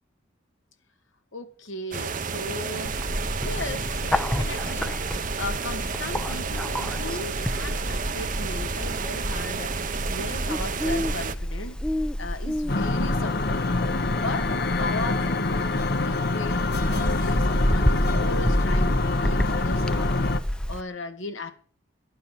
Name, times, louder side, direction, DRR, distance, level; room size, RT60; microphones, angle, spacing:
voice 1, 1.3-3.0 3.4-11.8 12.2-13.6 14.1-14.5 14.8-15.7 16.0-21.5, left 2 dB, 90° left, 2.3 m, -36 dB
sound 1, 1.9-11.3, right 5 dB, 45° right, 0.8 m, -31 dB
Bird, 2.8-20.8, equal, 5° left, 0.6 m, -29 dB
sound 2, 12.7-20.4, left 3 dB, 55° left, 1.1 m, -26 dB
12.5 x 11.5 x 6.8 m
head